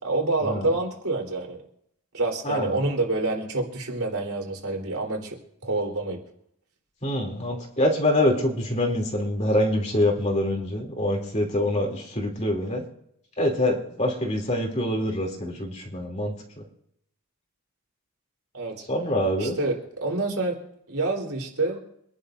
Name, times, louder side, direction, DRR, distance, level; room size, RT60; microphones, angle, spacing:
voice 1, 0.0-1.6 2.1-5.4 5.6-6.2 18.5-18.8 19.4-20.6 20.9-21.8, right 2 dB, 85° right, 0 dB, 3.7 m, -27 dB
voice 2, 2.4-2.8 7.0-12.8 13.4-16.6 18.9-19.6, left 1 dB, 30° left, 1 dB, 2.9 m, -25 dB
27.0 x 11.0 x 2.6 m, 0.73 s
head